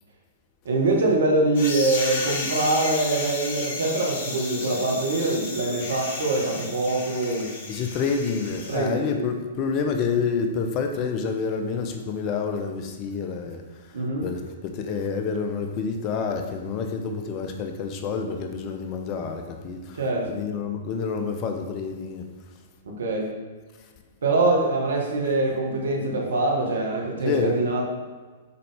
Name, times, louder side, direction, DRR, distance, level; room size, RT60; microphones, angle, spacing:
voice 1, 0.6-7.5 8.7-9.3 13.9-14.2 20.0-20.3 22.8-23.3 24.2-27.8, right 2 dB, 70° right, 0 dB, 1.4 m, -24 dB
sound 1, 1.5-8.8, left 3 dB, 55° left, 1.4 m, -33 dB
voice 2, 7.7-13.6 14.2-20.0 20.3-22.3 27.2-27.6, left 5 dB, 40° left, 4 dB, 0.8 m, -28 dB
6.8 x 4.2 x 3.5 m, 1.4 s
figure-of-eight pair, 110°, 0 cm